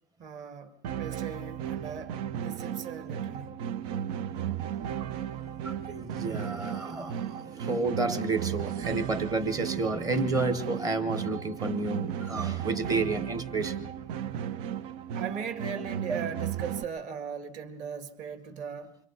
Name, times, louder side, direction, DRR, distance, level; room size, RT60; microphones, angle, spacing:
voice 1, 0.2-3.5 14.3-14.4 15.1-19.0, right 7 dB, 35° right, 2.1 m, -38 dB
sound 1, 0.8-16.8, right 9 dB, 70° right, 1.0 m, -35 dB
voice 2, 5.4-13.9, right 3 dB, 15° right, 1.1 m, -31 dB
28.5 x 24.0 x 4.1 m
cardioid pair, 180°, 21 cm